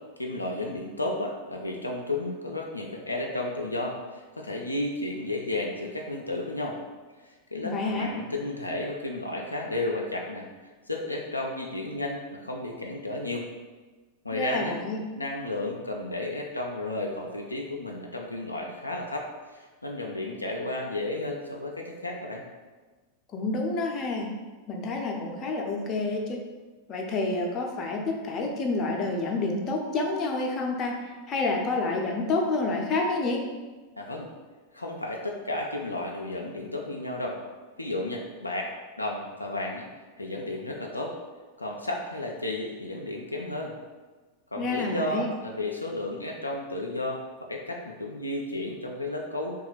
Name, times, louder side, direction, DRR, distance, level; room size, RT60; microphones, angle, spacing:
voice 1, 0.2-6.8 7.2-13.5 14.2-14.8 15.2-22.4 34.0-34.3 34.7-37.4 37.8-38.7 39.0-39.9 40.2-41.2 41.6-43.7 44.5-47.2 47.5-49.6, left 2 dB, 85° left, 0 dB, 0.3 m, -33 dB
voice 2, 7.6-8.1 14.3-15.0 23.3-24.3 24.7-26.4 26.9-33.4 44.6-45.3, left 3 dB, 30° left, 1 dB, 0.5 m, -28 dB
2.9 x 2.3 x 4.0 m, 1.3 s
figure-of-eight pair, 90°, 0 cm